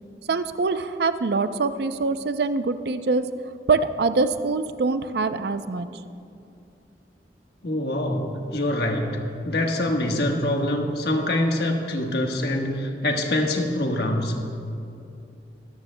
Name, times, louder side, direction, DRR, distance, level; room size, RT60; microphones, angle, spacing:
voice 1, 0.3-3.3 3.7-5.9, right 4 dB, 65° right, 11 dB, 0.5 m, -24 dB
voice 2, 7.6-14.4, left 1 dB, 60° left, 2 dB, 1.3 m, -25 dB
23.5 x 13.5 x 2.2 m, 2.6 s
head